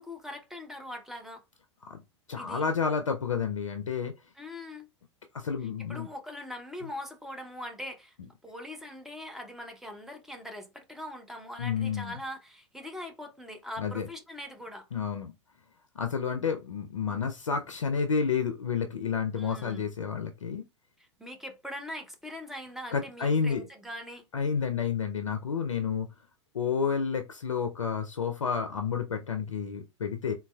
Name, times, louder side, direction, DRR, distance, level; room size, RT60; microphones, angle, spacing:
voice 1, 0.0-1.4 2.4-2.6 4.4-4.9 5.9-8.1 8.4-14.8 19.4-19.8 21.0-24.2, left 1 dB, ahead, 0.7 m, -42 dB
voice 2, 2.3-4.1 5.3-6.1 11.6-12.2 13.8-14.1 14.9-15.3 16.0-20.6 22.9-23.6 24.3-26.1 26.5-30.3, left 6 dB, 85° left, 0.4 m, -30 dB
4.0 x 2.2 x 2.2 m
figure-of-eight pair, 95°, 16 cm